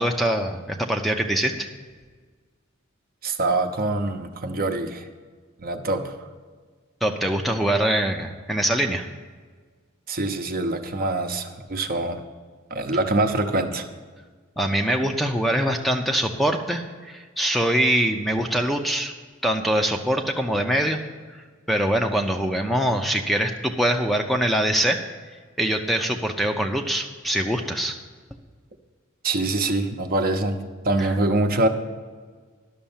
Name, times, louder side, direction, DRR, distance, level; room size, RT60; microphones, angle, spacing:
voice 1, 0.0-1.7 7.0-9.1 14.6-19.1 19.4-21.0 21.7-25.0 25.6-28.0 31.0-31.1, right 1 dB, ahead, 4 dB, 0.6 m, -23 dB
voice 2, 3.2-5.1 5.6-6.2 10.1-12.2 12.7-13.9 29.2-31.7, right 2 dB, 45° right, 6 dB, 0.8 m, -24 dB
11.5 x 6.6 x 7.2 m, 1.5 s
head